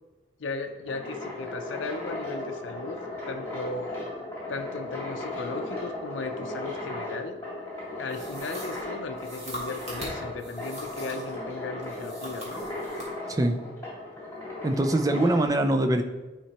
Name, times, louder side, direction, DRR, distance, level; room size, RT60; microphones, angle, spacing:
voice 1, 0.4-3.0 3.3-3.9 4.5-7.4 8.0-12.7, left 3 dB, 75° left, 4 dB, 0.5 m, -36 dB
sound 1, 0.6-15.5, left 2 dB, 10° left, 2.0 m, -36 dB
sound 2, 8.1-11.4 11.8-13.1, right 1 dB, 35° right, 1.8 m, -41 dB
voice 2, 14.6-16.0, right 1 dB, 20° right, 6 dB, 0.4 m, -23 dB
10.0 x 4.4 x 2.9 m, 1.2 s
head